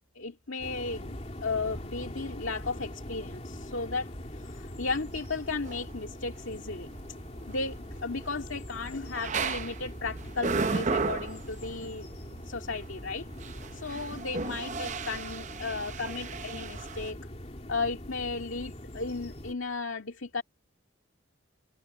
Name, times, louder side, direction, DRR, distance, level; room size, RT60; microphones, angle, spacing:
voice 1, 0.1-1.2 1.4-6.9 7.5-12.1 12.4-13.3 13.7-17.2 17.7-20.4, left 3 dB, 75° left, 2.0 m, -35 dB
sound 1, 0.6-19.5, left 1 dB, 35° left, 3.0 m, -43 dB
sound 2, 4.7-17.1, right 4 dB, 35° right, 0.6 m, -36 dB
head